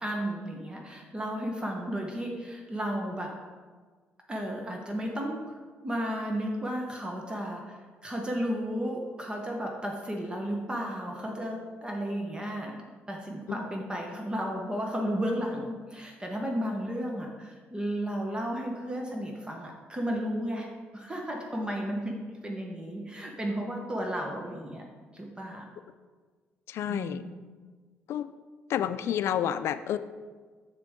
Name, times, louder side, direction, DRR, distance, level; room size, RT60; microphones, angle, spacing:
voice 1, 0.0-3.4 4.3-5.6 5.8-12.8 13.1-24.9 25.1-25.7 26.9-27.4, equal, 20° right, 1 dB, 1.1 m, -33 dB
voice 2, 26.7-27.2 28.1-28.3 28.7-30.0, left 10 dB, 70° left, 13 dB, 0.4 m, -29 dB
6.8 x 6.3 x 3.6 m, 1.5 s
cardioid pair, 80°, 5 cm